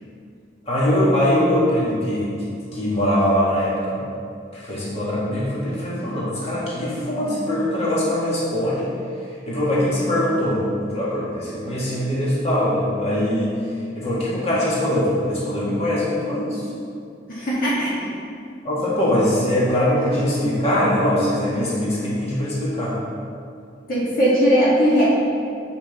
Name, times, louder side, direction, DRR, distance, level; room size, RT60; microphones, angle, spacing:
voice 1, 0.6-4.0 4.5-8.9 9.4-13.6 14.0-16.6 18.6-23.0, left 1 dB, 35° left, -7 dB, 1.5 m, -22 dB
voice 2, 17.3-18.1 23.9-25.1, equal, 50° left, -7 dB, 1.5 m, -19 dB
7.1 x 5.4 x 3.9 m, 2.4 s
head